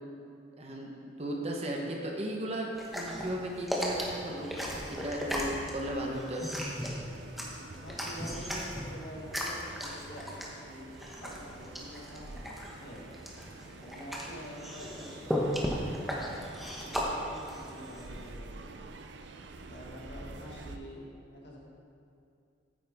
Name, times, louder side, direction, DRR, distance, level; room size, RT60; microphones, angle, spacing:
voice 1, 0.6-4.5 4.9-6.5, right 1 dB, 35° right, 0 dB, 1.0 m, -36 dB
Dog eating chewing - squelchy zombie guts sounds, 2.8-18.4, equal, ahead, 0.9 m, -36 dB
sound 1, 3.9-20.8, right 3 dB, 70° right, 0.5 m, -48 dB
voice 2, 7.5-13.1 13.7-16.3 16.9-18.8 19.7-21.6, equal, 65° left, -3 dB, 1.7 m, -47 dB
9.1 x 8.9 x 3.5 m, 2.4 s
head